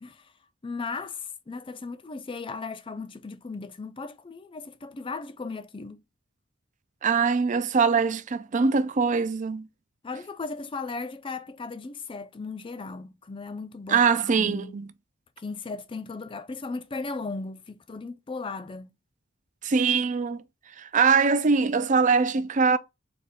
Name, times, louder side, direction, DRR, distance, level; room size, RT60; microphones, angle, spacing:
voice 1, 0.0-0.3 0.6-6.0 10.0-14.0 14.3-14.7 15.4-18.9, left 4 dB, 25° left, 0.4 m, -36 dB
voice 2, 7.0-9.7 13.9-14.9 19.6-20.4 20.8-22.8, right 5 dB, 35° right, 0.4 m, -22 dB
4.2 x 3.1 x 3.6 m
head